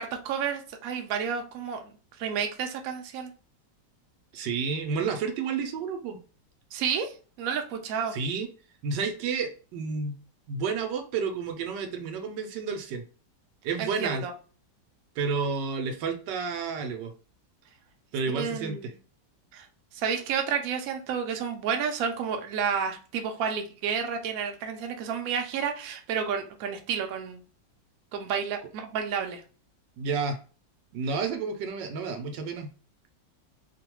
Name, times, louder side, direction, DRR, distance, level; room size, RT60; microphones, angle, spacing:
voice 1, 0.0-3.3 6.7-8.1 13.8-14.3 18.3-18.9 19.5-19.7 19.9-27.4 28.1-29.4, right 7 dB, 65° right, 4 dB, 0.9 m, -31 dB
voice 2, 4.3-6.2 8.1-8.5 8.8-10.2 10.5-13.0 13.6-14.2 15.2-17.1 18.1-18.9 30.0-30.4 30.9-32.7, right 5 dB, 85° right, 5 dB, 1.3 m, -30 dB
3.1 x 2.2 x 2.9 m, 0.37 s
omnidirectional pair, 1.9 m